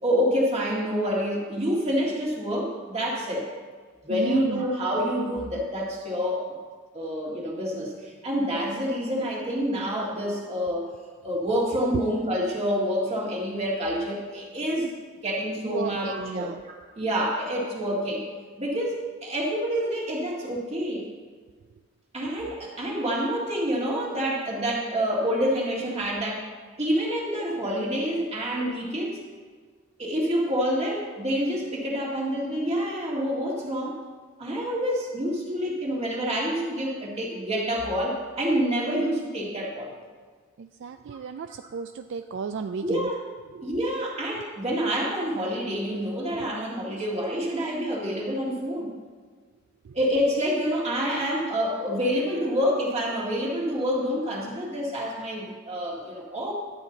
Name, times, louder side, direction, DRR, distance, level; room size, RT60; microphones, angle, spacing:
voice 1, 0.0-3.5 4.0-6.6 6.9-10.9 11.2-14.9 15.2-18.2 18.6-21.1 22.1-26.5 26.8-29.2 30.0-34.0 34.4-39.9 41.1-41.2 42.8-43.2 43.6-48.9 49.9-56.5, equal, 30° right, -3 dB, 2.0 m, -27 dB
voice 2, 4.1-4.6 15.7-16.6 40.6-43.1 43.5-43.8 49.9-50.0, right 5 dB, 60° right, 9 dB, 0.3 m, -34 dB
11.5 x 8.2 x 3.9 m, 1.5 s
head